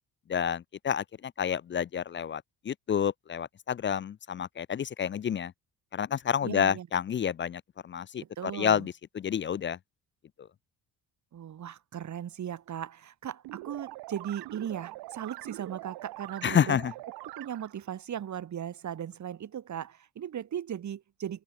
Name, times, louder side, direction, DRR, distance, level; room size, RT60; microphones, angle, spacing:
voice 1, 0.3-5.5 5.9-9.8 10.4-10.5 16.4-16.9, left 8 dB, 30° left, 0.4 m, -29 dB
voice 2, 6.4-6.9 8.4-8.9 11.3-16.8 17.4-21.4, right 9 dB, 50° right, 1.5 m, -37 dB
sound 1, 13.4-17.9, right 19 dB, 85° right, 1.0 m, -43 dB
cardioid pair, 95°, 38 cm